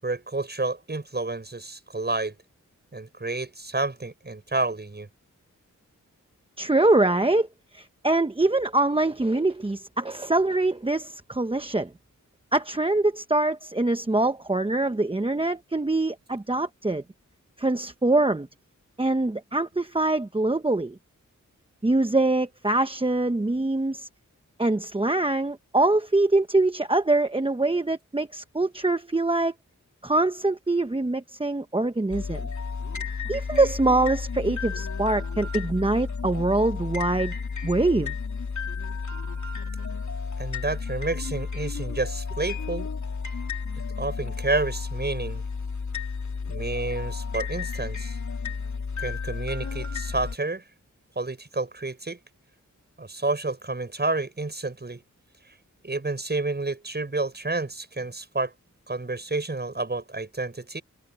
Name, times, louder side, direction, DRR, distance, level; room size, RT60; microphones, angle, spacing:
voice 1, 0.0-2.4 2.9-5.1 40.4-42.9 44.0-45.4 46.5-48.2 49.0-50.6 51.2-52.2 53.0-55.0 55.5-55.6 55.8-58.5 58.9-60.8, right 2 dB, 30° right, 7.1 m, -30 dB
voice 2, 6.6-7.5 7.7-11.9 12.5-17.0 17.6-18.5 19.0-21.0 21.8-24.1 24.6-29.5 30.0-32.5 33.3-37.3 37.6-38.1, right 2 dB, 15° right, 0.9 m, -24 dB
sound 1, 32.1-50.4, left 5 dB, 65° left, 3.5 m, -32 dB
wide cardioid pair, 80°, 31 cm